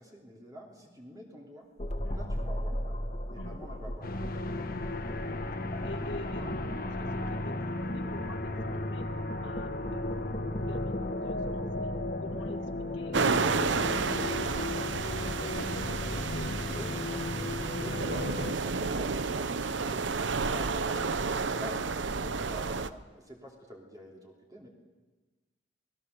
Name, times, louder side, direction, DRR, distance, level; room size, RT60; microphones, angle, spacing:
voice 1, 0.0-1.7 2.1-2.9 3.3-4.2 6.3-6.5 10.1-10.2 16.8-17.4 17.8-24.7, equal, 20° right, -1 dB, 3.0 m, -47 dB
sound 1, 1.8-19.0, equal, 40° left, 2.0 m, -40 dB
sound 2, 4.0-18.5, left 2 dB, 55° left, 1.5 m, -35 dB
voice 2, 4.6-5.6 5.8-6.5 6.8-9.1 9.4-10.2 10.7-11.9 12.2-16.8 17.8-18.0 21.7-21.8, left 2 dB, 85° left, 6 dB, 2.0 m, -46 dB
sound 3, 13.1-22.9, right 4 dB, 80° right, 0.8 m, -31 dB
26.5 x 19.5 x 6.7 m, 1.3 s
head